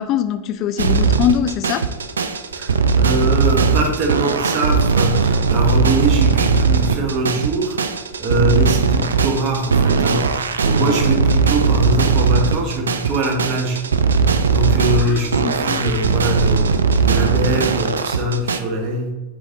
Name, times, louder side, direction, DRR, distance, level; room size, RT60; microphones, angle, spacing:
voice 1, 0.0-1.9 14.8-15.9, left 9 dB, 35° left, 12 dB, 0.3 m, -23 dB
sound 1, 0.8-18.6, right 5 dB, 70° right, 0.4 m, -18 dB
voice 2, 2.5-7.8 8.2-13.8 14.5-16.7 17.0-19.1, right 1 dB, 40° right, 3 dB, 1.2 m, -22 dB
7.5 x 4.2 x 3.7 m, 1.1 s
figure-of-eight pair, 90°, 0 cm